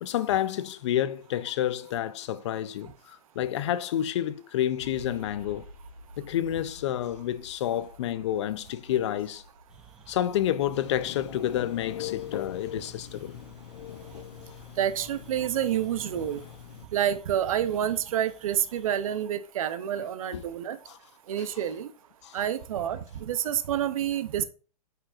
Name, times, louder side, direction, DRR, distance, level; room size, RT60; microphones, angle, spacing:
voice 1, 0.0-5.7 6.2-9.4 10.1-13.4 20.3-20.4 20.9-21.0 21.4-21.5 22.2-22.4, left 11 dB, 45° left, 0.5 m, -29 dB
sound 1, 4.8-14.2, right 1 dB, 85° right, 2.4 m, -52 dB
sound 2, 9.7-19.3, right 5 dB, 5° right, 0.4 m, -55 dB
Telephone, 10.7-16.9, left 11 dB, 80° left, 0.9 m, -41 dB
voice 2, 14.8-16.4 16.9-20.8 21.3-21.9 22.3-24.4, right 10 dB, 60° right, 0.7 m, -28 dB
8.9 x 4.9 x 2.5 m
hypercardioid pair, 155°, 20 cm